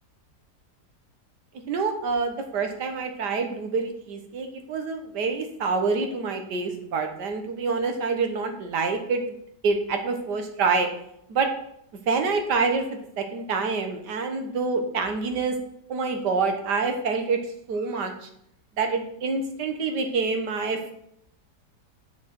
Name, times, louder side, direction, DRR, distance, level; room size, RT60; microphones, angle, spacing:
voice 1, 1.7-9.4 9.6-10.9 11.3-11.5 12.1-15.6 15.9-17.4 17.7-18.1 18.8-20.9, right 4 dB, 70° right, 5 dB, 1.8 m, -26 dB
6.9 x 6.7 x 5.9 m, 0.72 s
omnidirectional pair, 1.9 m